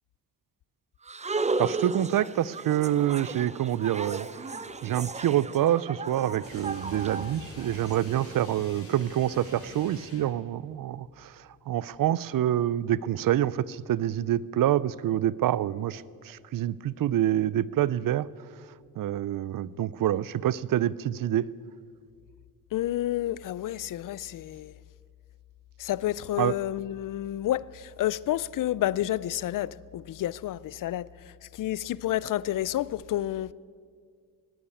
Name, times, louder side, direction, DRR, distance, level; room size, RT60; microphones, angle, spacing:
sound 1, 1.1-8.0, right 3 dB, 20° right, 0.6 m, -35 dB
voice 1, 1.6-4.3 4.8-18.3 19.0-21.5 26.4-26.5, right 12 dB, 60° right, 0.5 m, -27 dB
sound 2, 6.4-10.4, left 1 dB, 35° left, 4.6 m, -46 dB
voice 2, 22.7-24.7 25.8-33.5, left 13 dB, 55° left, 0.5 m, -30 dB
18.0 x 8.8 x 8.4 m
cardioid pair, 80°, 38 cm